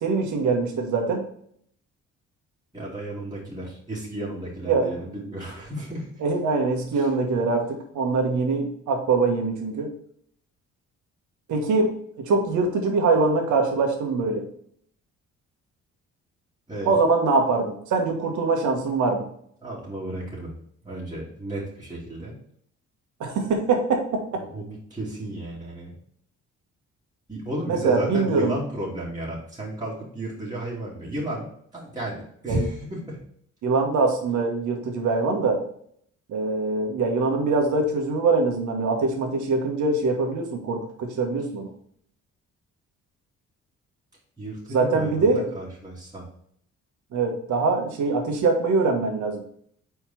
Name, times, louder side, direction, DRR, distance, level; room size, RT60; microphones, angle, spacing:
voice 1, 0.0-1.3 4.7-4.9 6.2-9.9 11.5-14.5 16.9-19.3 23.2-24.1 27.7-28.6 32.5-32.6 33.6-35.6 36.3-41.7 44.7-45.5 47.1-49.4, right 3 dB, 75° right, 3 dB, 1.7 m, -23 dB
voice 2, 2.7-6.2 6.9-7.1 16.7-17.0 19.6-20.5 20.8-22.4 24.3-25.9 27.3-33.2 44.4-46.2, right 1 dB, 15° right, -7 dB, 2.9 m, -33 dB
4.8 x 4.3 x 5.8 m, 0.65 s
cardioid pair, 90°, 30 cm